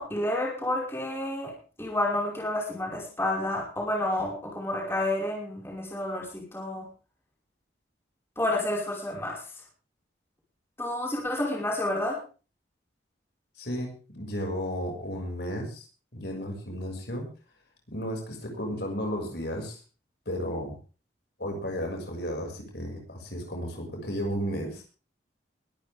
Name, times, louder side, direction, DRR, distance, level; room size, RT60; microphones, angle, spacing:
voice 1, 0.0-6.9 8.4-9.4 10.8-12.2, left 1 dB, 15° left, -3 dB, 5.5 m, -30 dB
voice 2, 13.6-15.8 16.1-17.3 17.9-19.8 20.3-20.8 21.4-24.8, equal, 55° left, 1 dB, 6.4 m, -33 dB
22.0 x 13.5 x 3.7 m, 0.36 s
head